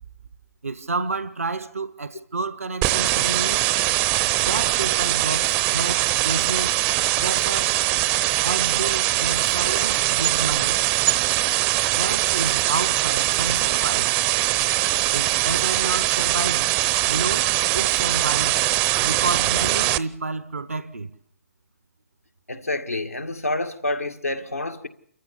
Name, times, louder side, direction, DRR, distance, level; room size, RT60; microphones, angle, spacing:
voice 1, 0.6-3.6 4.4-6.8 7.2-7.8 8.4-10.8 11.9-14.2 15.1-16.7 17.0-18.6 19.0-21.1, right 3 dB, 75° right, 1.3 m, -30 dB
sound 1, 2.8-20.0, right 16 dB, 25° right, 0.7 m, -22 dB
voice 2, 22.5-24.9, left 2 dB, 90° left, 2.0 m, -28 dB
28.5 x 14.5 x 7.0 m
figure-of-eight pair, 130°, 8 cm